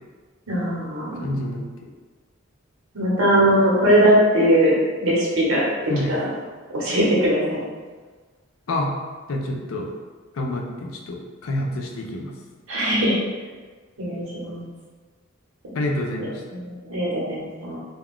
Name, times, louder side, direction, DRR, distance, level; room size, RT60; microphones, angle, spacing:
voice 1, 0.5-1.3 2.9-4.7 5.0-5.6 6.1-6.3 6.7-7.6 12.7-13.2 14.0-14.7 16.2-17.8, right 1 dB, 85° right, -6 dB, 0.9 m, -20 dB
voice 2, 1.2-1.7 5.9-6.2 8.7-8.9 9.3-9.9 10.3-12.3 15.7-16.4, left 1 dB, 80° left, 1 dB, 0.4 m, -27 dB
2.3 x 2.3 x 3.6 m, 1.4 s
head